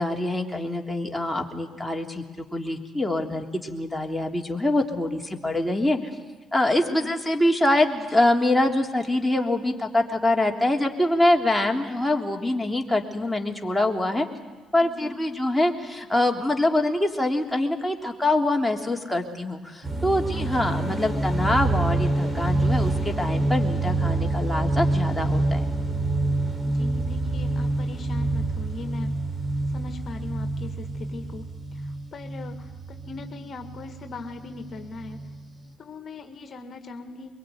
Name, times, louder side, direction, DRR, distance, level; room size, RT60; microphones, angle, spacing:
voice 1, 0.0-6.0 6.5-14.3 14.7-25.7, left 1 dB, 5° left, 2 dB, 3.3 m, -24 dB
voice 2, 14.8-15.2 20.7-21.0 26.6-29.2 29.7-35.3 35.8-37.4, left 3 dB, 50° left, 6 dB, 1.9 m, -40 dB
sound 1, 19.8-35.7, right 2 dB, 20° right, 4.4 m, -27 dB
23.0 x 23.0 x 9.4 m, 1.4 s
hypercardioid pair, 55°, 0 cm